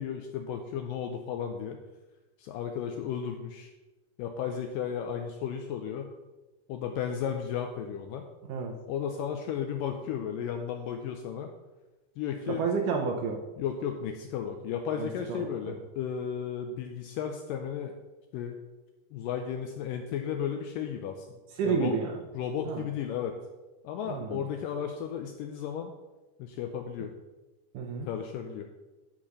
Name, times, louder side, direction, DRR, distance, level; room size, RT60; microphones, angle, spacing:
voice 1, 0.0-1.8 2.4-3.7 4.2-6.1 6.7-8.3 8.9-11.5 12.2-12.6 13.6-18.0 18.3-18.6 19.1-21.3 21.6-22.0 22.3-23.4 23.8-25.9 26.4-27.1 28.1-28.7, left 8 dB, 80° left, 5 dB, 2.0 m, -34 dB
voice 2, 12.5-13.4 14.9-15.8 21.6-22.1 22.7-22.8 24.1-24.4 27.7-28.1, right 5 dB, 75° right, 2 dB, 2.1 m, -30 dB
10.5 x 5.0 x 5.3 m, 1.1 s
omnidirectional pair, 4.4 m